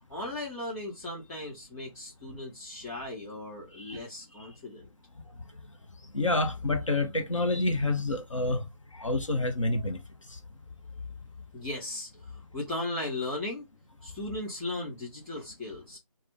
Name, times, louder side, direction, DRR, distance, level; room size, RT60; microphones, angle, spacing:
voice 1, 0.1-4.8 11.5-13.7 14.0-16.0, left 2 dB, 5° left, 1.4 m, -37 dB
voice 2, 6.1-8.6 9.0-10.0, left 2 dB, 60° left, 0.8 m, -28 dB
3.3 x 2.1 x 3.2 m
figure-of-eight pair, 155°, 18 cm